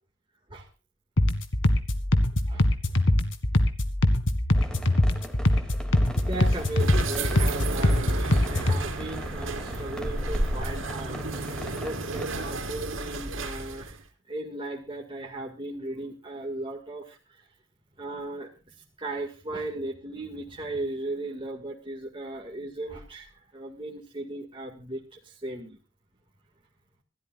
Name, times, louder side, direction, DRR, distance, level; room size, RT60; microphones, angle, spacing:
sound 1, 1.2-8.8, left 1 dB, 75° left, 2.1 m, -23 dB
sound 2, 4.5-12.4, equal, 5° left, 2.4 m, -40 dB
voice 1, 6.2-14.0 14.3-17.2 18.0-18.5 19.0-25.8, right 2 dB, 25° right, 0 dB, 2.0 m, -37 dB
sound 3, 6.2-14.0, right 2 dB, 85° right, 2.8 m, -33 dB
26.5 x 13.0 x 2.4 m, 0.31 s
head